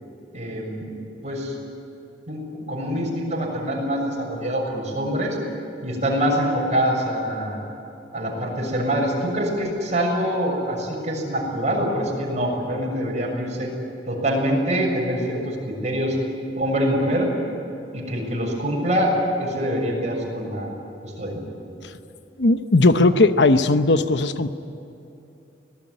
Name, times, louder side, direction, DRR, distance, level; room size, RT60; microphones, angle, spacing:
voice 1, 0.3-0.9 1.2-1.5 2.3-5.4 5.8-7.6 8.1-13.7 14.1-16.2 16.6-17.3 17.9-20.8 21.0-21.4, equal, 40° right, -1 dB, 6.9 m, -24 dB
voice 2, 22.4-24.5, left 2 dB, 70° left, 10 dB, 1.0 m, -17 dB
25.0 x 19.0 x 9.9 m, 2.8 s
head